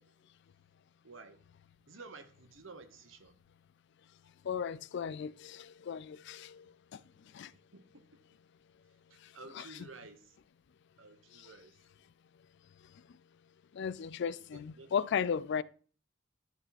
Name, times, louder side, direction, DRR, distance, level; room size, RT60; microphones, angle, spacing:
voice 1, 1.0-1.4 1.9-3.3 7.7-8.0 9.1-10.4 11.0-11.8 14.4-14.9, right 3 dB, 75° right, 1.1 m, -52 dB
voice 2, 4.4-6.7 6.9-7.0 7.3-7.5 13.7-15.6, left 7 dB, 60° left, 0.4 m, -35 dB
10.5 x 4.9 x 4.1 m
head